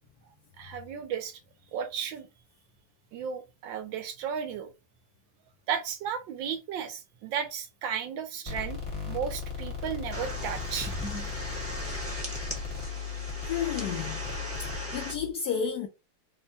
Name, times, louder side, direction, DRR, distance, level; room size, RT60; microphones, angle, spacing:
voice 1, 0.6-1.4 1.7-2.3 3.1-4.7 5.7-8.8 9.1-10.9, right 7 dB, 75° right, 1.4 m, -34 dB
sound 1, 8.5-15.3, left 6 dB, 25° left, 0.9 m, -37 dB
sound 2, 10.1-15.1, equal, 10° right, 0.7 m, -38 dB
voice 2, 13.4-14.2 14.9-15.9, left 7 dB, 70° left, 0.9 m, -31 dB
3.5 x 2.2 x 4.0 m
omnidirectional pair, 2.1 m